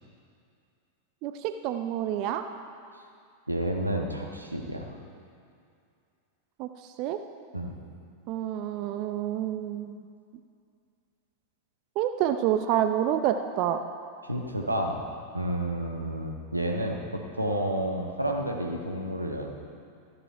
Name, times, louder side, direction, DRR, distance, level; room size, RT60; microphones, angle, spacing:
voice 1, 1.2-2.4 6.6-6.7 7.0-7.2 8.3-10.1 12.0-13.8, right 11 dB, 45° right, 8 dB, 0.6 m, -28 dB
voice 2, 3.5-4.9 7.5-7.7 14.2-15.0 15.3-19.5, right 1 dB, 85° right, 1 dB, 1.3 m, -30 dB
14.0 x 11.0 x 4.6 m, 2.4 s
figure-of-eight pair, 90°, 0 cm